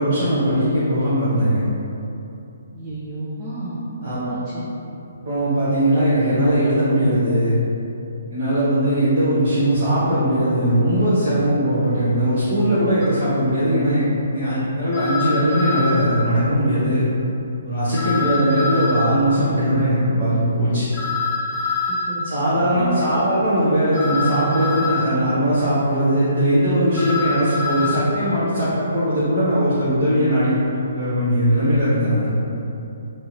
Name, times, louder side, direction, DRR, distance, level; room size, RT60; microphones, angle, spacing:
voice 1, 0.0-1.6 4.0-4.3 5.2-7.5 8.3-14.1 14.3-17.0 17.6-20.9 22.2-30.6 30.9-32.3, equal, 45° right, -14 dB, 1.1 m, -19 dB
voice 2, 2.7-3.8 4.1-4.7 22.1-22.3 22.7-23.4, right 2 dB, 20° right, -11 dB, 0.6 m, -31 dB
sound 1, 13.0-13.1 14.9-16.1 17.9-19.1 20.9-22.1 23.9-25.1 26.9-27.9, left 4 dB, 10° left, 0.9 m, -25 dB
3.4 x 3.0 x 3.1 m, 2.8 s
figure-of-eight pair, 130°, 0 cm